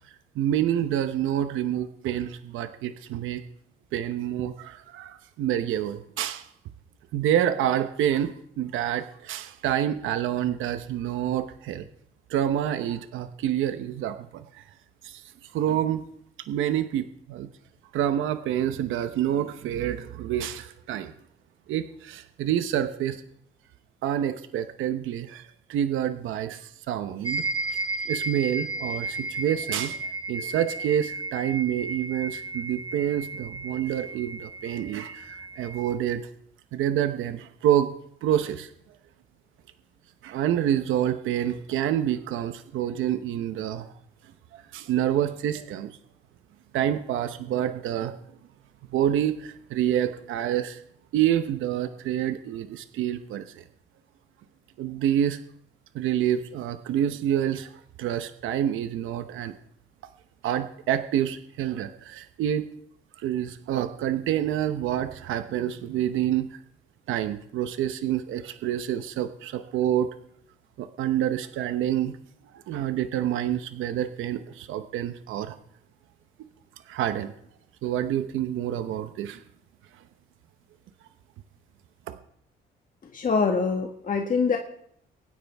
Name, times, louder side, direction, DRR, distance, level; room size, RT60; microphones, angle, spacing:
voice 1, 0.3-3.4 3.9-6.5 7.1-11.9 12.3-14.6 15.0-15.2 15.5-16.0 16.5-17.5 17.9-21.1 21.7-23.2 24.0-27.4 27.7-30.0 30.3-36.3 36.7-37.9 38.2-38.7 40.2-43.9 44.5-46.0 46.7-48.1 48.9-50.8 51.1-53.6 54.8-55.4 55.9-59.5 60.4-62.7 63.2-66.6 67.1-70.1 70.8-72.1 72.5-75.6 76.9-77.3 77.8-79.4 82.1-82.2, right 11 dB, 85° right, 9 dB, 0.9 m, -27 dB
sound 1, 27.2-35.9, right 2 dB, 20° right, 1.9 m, -34 dB
voice 2, 83.1-84.6, left 5 dB, 45° left, 2 dB, 1.5 m, -24 dB
23.5 x 9.6 x 3.5 m, 0.69 s
cardioid pair, 90°, 20 cm